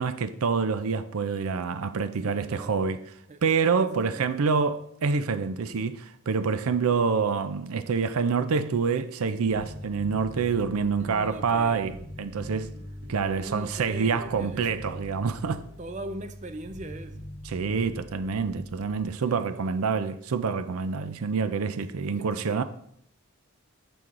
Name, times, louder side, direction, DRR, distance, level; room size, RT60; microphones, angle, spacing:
voice 1, 0.0-3.0 3.4-12.7 13.1-15.6 17.5-22.6, right 5 dB, 85° right, 0.5 m, -27 dB
voice 2, 2.2-2.9 3.3-3.4 3.8-4.5 10.9-11.9 13.3-14.7 15.8-17.2 19.2-19.8 22.1-22.6, right 1 dB, 35° right, 0.5 m, -41 dB
Bass guitar, 9.5-19.1, equal, 60° right, 2.1 m, -42 dB
6.9 x 6.1 x 3.7 m
head